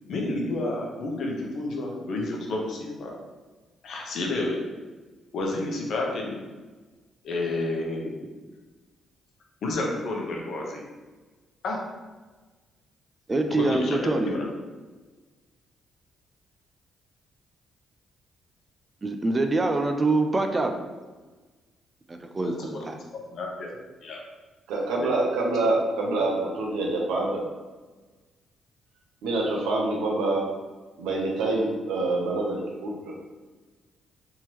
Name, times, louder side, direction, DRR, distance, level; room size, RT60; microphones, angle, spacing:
voice 1, 0.1-3.1 3.8-4.6 5.3-6.4 7.2-8.1 9.6-10.8 11.6-11.8 13.5-14.5 22.6-22.8 23.3-23.7 24.0-24.2, left 2 dB, 65° left, -1 dB, 0.8 m, -30 dB
voice 2, 13.3-14.4 19.0-20.9 22.1-23.0, right 2 dB, 25° right, 5 dB, 0.4 m, -25 dB
voice 3, 24.7-27.4 29.2-30.5 31.0-33.2, right 2 dB, 90° right, -2 dB, 0.8 m, -26 dB
3.6 x 3.0 x 3.0 m, 1.3 s
cardioid pair, 90°, 0 cm